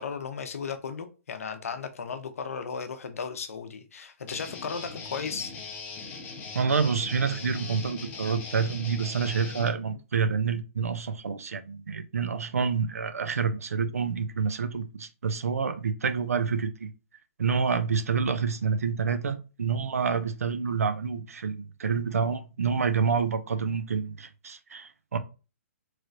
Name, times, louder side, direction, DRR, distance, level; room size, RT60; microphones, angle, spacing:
voice 1, 0.0-5.5, left 6 dB, 75° left, 0.6 m, -35 dB
Guitar, 4.3-9.7, left 4 dB, 20° left, 0.7 m, -40 dB
voice 2, 6.5-16.9 17.4-25.2, right 5 dB, 80° right, 0.5 m, -28 dB
3.1 x 3.0 x 2.5 m
hypercardioid pair, 135°, 8 cm